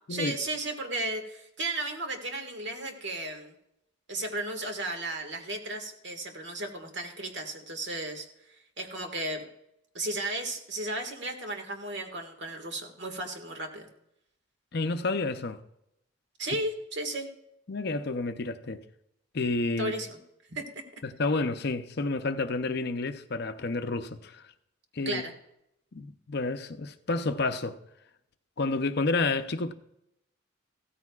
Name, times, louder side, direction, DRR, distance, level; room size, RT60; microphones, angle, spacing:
voice 1, 0.1-3.5 4.1-8.3 8.8-9.5 9.9-13.9 16.4-17.3 19.8-20.2 20.5-20.8 25.1-25.3, right 2 dB, 60° right, 1.8 m, -34 dB
voice 2, 14.7-15.6 17.7-18.8 19.3-19.9 21.0-24.4 24.9-25.2 25.9-27.8 28.6-29.7, left 3 dB, 55° left, 0.6 m, -30 dB
15.5 x 14.0 x 2.4 m
head